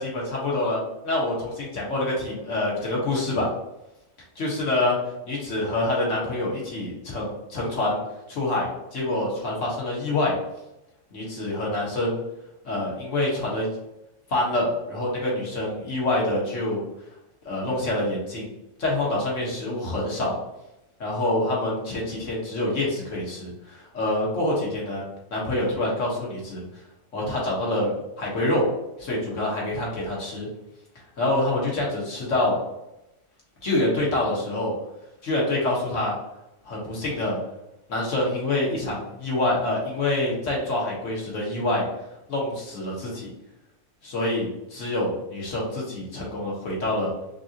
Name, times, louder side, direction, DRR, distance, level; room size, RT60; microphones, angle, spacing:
voice 1, 0.0-3.5 4.3-5.0 5.2-8.0 8.3-10.4 11.1-12.2 12.6-13.7 14.3-16.8 17.4-18.5 18.8-20.4 21.0-25.0 25.3-26.6 27.1-28.7 29.0-30.5 31.2-32.6 33.6-34.7 35.2-36.2 36.6-37.4 37.9-41.8 42.3-43.3 44.0-47.1, left 1 dB, 70° left, -4 dB, 1.6 m, -26 dB
5.8 x 2.5 x 2.8 m, 0.91 s
omnidirectional pair, 1.3 m